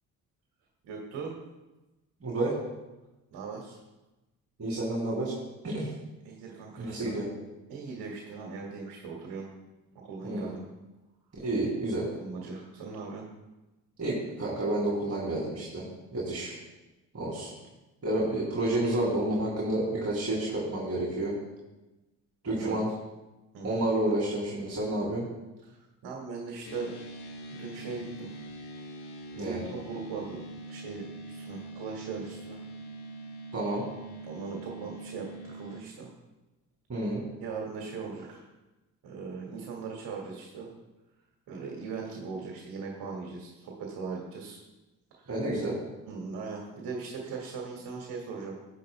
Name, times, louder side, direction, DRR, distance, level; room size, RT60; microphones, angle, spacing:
voice 1, 0.8-1.3 3.3-3.8 6.2-7.2 7.7-9.5 10.0-10.6 12.2-13.3 22.5-22.8 23.5-23.8 25.6-26.9 27.5-28.3 29.3-30.4 30.7-31.0 31.3-32.6 34.2-36.1 37.4-38.4 39.0-40.7 41.5-44.6 45.1-45.3 46.1-48.5, right 4 dB, 55° right, -1 dB, 2.0 m, -39 dB
voice 2, 2.2-2.5 4.6-5.4 5.6-5.9 6.8-7.3 10.2-10.5 11.4-12.1 14.0-15.9 16.1-16.6 17.1-17.5 18.0-21.3 22.4-22.9 23.6-25.3 29.4-29.6 33.5-33.8 36.9-37.2 45.3-45.7, right 1 dB, 30° right, -4 dB, 2.8 m, -30 dB
sound 1, 26.6-35.8, right 2 dB, 55° left, 1.4 m, -43 dB
10.5 x 10.0 x 2.2 m, 1.1 s
hypercardioid pair, 50°, 46 cm